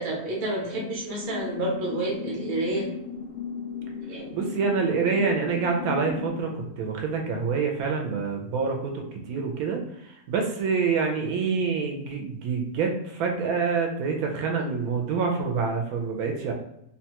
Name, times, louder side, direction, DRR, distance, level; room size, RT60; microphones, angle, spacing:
voice 1, 0.0-2.9 4.1-4.4, right 2 dB, 45° right, -2 dB, 0.8 m, -29 dB
sound 1, 1.2-6.3, left 6 dB, 60° left, 0.6 m, -36 dB
voice 2, 4.3-16.5, right 5 dB, 80° right, 2 dB, 1.0 m, -27 dB
2.9 x 2.2 x 2.8 m, 0.78 s
omnidirectional pair, 1.5 m